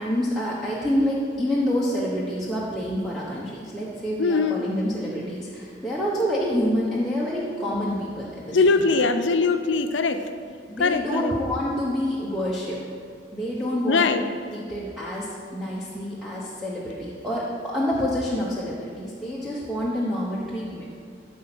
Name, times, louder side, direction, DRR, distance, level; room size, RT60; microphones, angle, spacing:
voice 1, 0.0-9.1 10.7-12.8 13.3-14.0 14.5-20.9, equal, ahead, -8 dB, 1.0 m, -27 dB
voice 2, 4.2-4.6 8.5-10.2 10.8-11.3 13.9-14.2, left 4 dB, 80° left, 8 dB, 0.6 m, -21 dB
13.0 x 4.3 x 6.1 m, 2.3 s
head